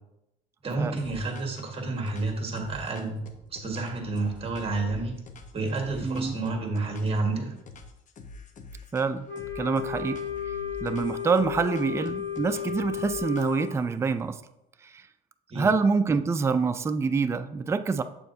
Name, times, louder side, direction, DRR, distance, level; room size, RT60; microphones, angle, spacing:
voice 1, 0.6-3.2 3.5-5.2 5.5-7.5 15.5-15.7, right 3 dB, 35° right, 2 dB, 1.6 m, -30 dB
sound 1, 1.0-1.7 2.1-7.3 7.7-9.1 9.4-13.8, left 3 dB, 50° left, 0.9 m, -46 dB
voice 2, 6.0-6.4 8.9-9.3 9.6-10.2 10.5-14.4 14.9-15.0 15.5-18.0, right 4 dB, 15° right, 10 dB, 0.3 m, -26 dB
Wind instrument woodwind instrument, 9.3-13.7, left 8 dB, 15° left, 1.5 m, -33 dB
7.6 x 6.9 x 2.7 m, 0.86 s
cardioid pair, 110°, 17 cm